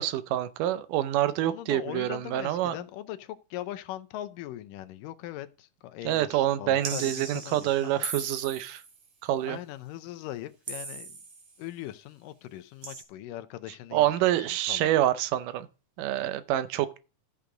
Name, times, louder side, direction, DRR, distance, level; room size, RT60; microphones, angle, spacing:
voice 1, 0.0-2.8 6.0-8.8 9.2-9.6 13.9-15.7 16.0-17.0, right 13 dB, 80° right, 2.3 m, -27 dB
voice 2, 1.4-8.1 9.5-11.1 11.6-14.4 14.7-15.0, left 13 dB, 85° left, 2.4 m, -40 dB
sound 1, 6.8-9.0 10.7-11.5 12.8-13.0, right 4 dB, 50° right, 2.7 m, -38 dB
13.5 x 6.9 x 3.8 m
omnidirectional pair, 3.8 m